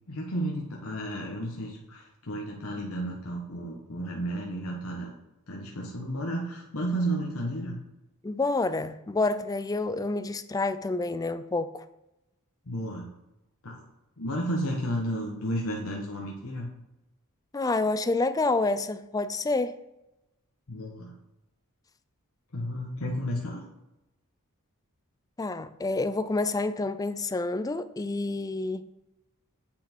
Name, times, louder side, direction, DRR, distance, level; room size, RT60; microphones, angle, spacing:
voice 1, 0.1-5.1 5.5-7.8 12.6-13.1 13.6-13.9 14.2-16.7 20.7-21.2 22.5-23.6, right 1 dB, 75° left, -1 dB, 1.2 m, -32 dB
voice 2, 8.2-11.9 17.5-19.8 25.4-28.8, left 3 dB, 15° left, 13 dB, 0.3 m, -28 dB
8.5 x 5.8 x 4.5 m, 0.92 s
head